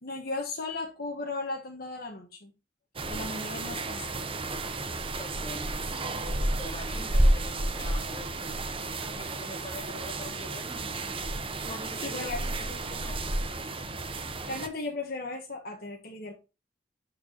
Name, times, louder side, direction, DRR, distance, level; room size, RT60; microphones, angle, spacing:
voice 1, 0.0-2.5 3.1-4.3 12.0-12.4 14.5-16.4, left 3 dB, 60° left, 1 dB, 1.3 m, -36 dB
sound 1, 3.0-14.7, right 1 dB, 30° right, 0.9 m, -31 dB
voice 2, 5.2-6.0 6.6-8.8 9.1-11.1 11.6-13.4, left 1 dB, 25° left, 3 dB, 2.6 m, -44 dB
12.5 x 4.6 x 2.8 m, 0.29 s
head